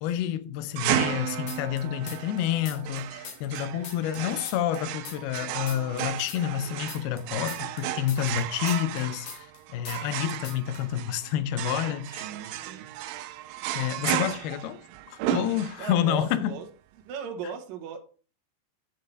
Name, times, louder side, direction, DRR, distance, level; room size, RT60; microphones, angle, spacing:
voice 1, 0.0-9.5 9.7-12.3 13.8-14.8 15.1-16.5, left 10 dB, 90° left, 2.2 m, -29 dB
sound 1, 0.8-16.1, right 12 dB, 85° right, 3.0 m, -34 dB
sound 2, 1.5-2.4 2.7-5.4 5.7-9.6 9.8-10.2 10.4-10.8, left 6 dB, 60° left, 1.9 m, -42 dB
voice 2, 12.0-12.9 15.8-16.7 17.0-18.0, right 7 dB, 65° right, 2.4 m, -37 dB
10.5 x 5.7 x 4.7 m
omnidirectional pair, 5.6 m